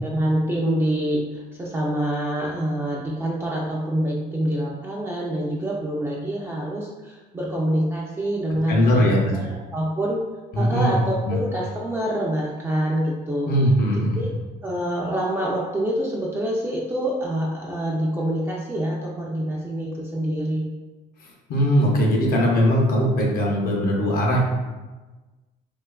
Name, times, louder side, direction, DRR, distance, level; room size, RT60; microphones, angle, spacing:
voice 1, 0.0-9.0 9.3-10.2 10.6-13.5 14.1-14.3 14.6-20.7, right 1 dB, 15° right, -4 dB, 0.3 m, -26 dB
voice 2, 8.7-9.3 10.5-11.4 13.5-14.2 21.2-24.4, equal, 60° left, -1 dB, 0.6 m, -20 dB
2.8 x 2.3 x 2.2 m, 1.2 s
cardioid pair, 110°, 17 cm